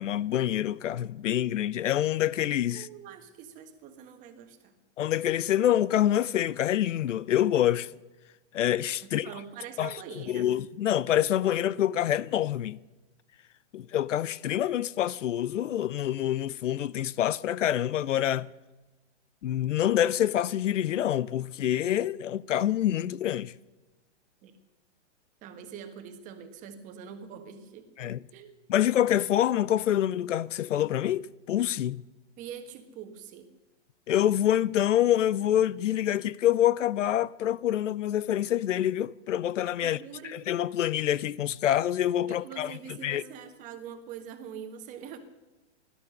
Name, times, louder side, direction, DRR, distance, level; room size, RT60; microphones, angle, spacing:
voice 1, 0.0-2.9 5.0-7.9 8.5-9.3 9.8-12.8 13.7-18.5 19.4-23.6 28.0-28.2 28.7-32.0 34.1-40.0 40.3-42.7 43.0-43.2, left 11 dB, 85° left, 0.7 m, -26 dB
voice 2, 2.7-4.7 9.0-10.5 24.4-24.5 25.4-27.9 28.3-28.5 32.4-33.5 39.8-40.5 42.3-45.2, right 8 dB, 20° right, 1.4 m, -44 dB
16.5 x 12.5 x 6.6 m
hypercardioid pair, 160°, 36 cm